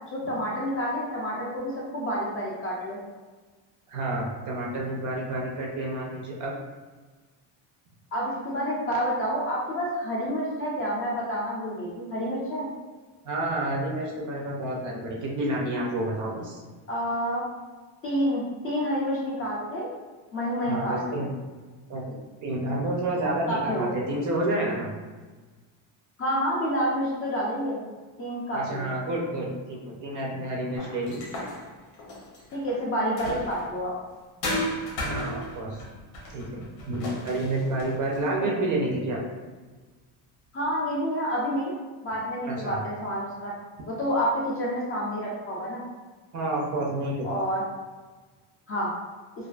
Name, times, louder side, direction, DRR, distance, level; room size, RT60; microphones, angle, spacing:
voice 1, 0.1-3.0 8.1-12.7 16.9-17.5 18.0-19.9 20.3-21.2 23.5-23.9 26.2-27.8 28.2-28.9 32.5-33.9 38.3-38.5 40.5-41.7 42.0-43.5 43.9-45.8 47.2-47.6 48.7-48.9, equal, 30° left, -5 dB, 0.4 m, -28 dB
voice 2, 3.9-6.5 13.2-16.6 20.7-21.3 21.9-22.1 22.4-24.9 28.5-31.2 35.0-35.8 36.3-39.2 42.5-42.8 46.3-47.3, right 1 dB, 40° right, -2 dB, 0.4 m, -29 dB
sound 1, 30.8-33.8 34.4-38.3, left 1 dB, 90° left, 0.8 m, -35 dB
2.4 x 2.3 x 2.3 m, 1.3 s
cardioid pair, 145°, 47 cm